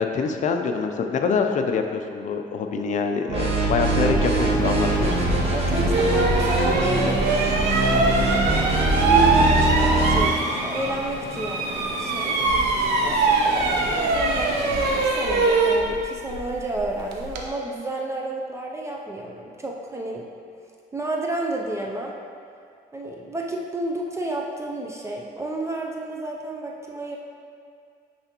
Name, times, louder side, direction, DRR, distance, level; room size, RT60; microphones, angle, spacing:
voice 1, 0.0-5.2 8.0-8.4, left 5 dB, 45° left, 5 dB, 0.5 m, -25 dB
sound 1, 3.3-10.3, right 2 dB, 35° right, 1.1 m, -22 dB
sound 2, 4.3-15.1, left 1 dB, 85° left, 0.8 m, -35 dB
sound 3, 5.2-5.4 5.9-11.0 11.3-17.5, right 3 dB, 80° right, 0.7 m, -22 dB
voice 2, 5.5-7.3 7.8-8.2 9.0-12.4 13.0-20.3 20.9-22.2 22.9-27.2, right 2 dB, 15° right, -1 dB, 0.5 m, -30 dB
9.6 x 3.3 x 2.9 m, 2.3 s
cardioid pair, 110°, 17 cm